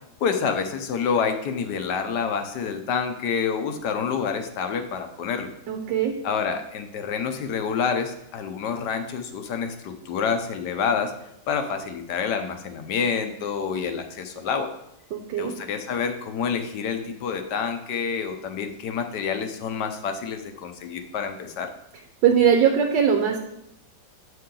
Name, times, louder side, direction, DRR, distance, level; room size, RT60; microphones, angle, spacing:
voice 1, 0.2-5.5 6.2-11.1 11.5-14.7 15.4-21.7, left 6 dB, 65° left, 7 dB, 1.2 m, -28 dB
voice 2, 5.7-6.2 15.1-15.6 22.2-23.4, right 8 dB, 70° right, 3 dB, 1.3 m, -20 dB
8.2 x 5.7 x 3.8 m, 0.83 s
omnidirectional pair, 2.1 m